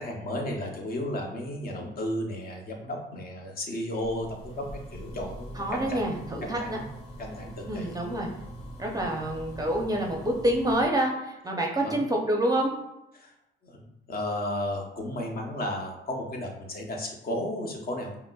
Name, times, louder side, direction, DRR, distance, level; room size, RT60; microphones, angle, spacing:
voice 1, 0.0-4.7 4.9-6.8 7.2-8.0 11.8-11.9 13.1-13.3 13.6-18.1, left 1 dB, 50° left, 1 dB, 0.8 m, -34 dB
sound 1, 4.0-10.9, right 1 dB, 30° left, 1.4 m, -43 dB
voice 2, 5.5-6.8 7.7-8.3 8.8-12.8, right 1 dB, 20° right, 0 dB, 0.6 m, -27 dB
5.2 x 2.0 x 2.3 m, 0.88 s
cardioid pair, 90°, 20 cm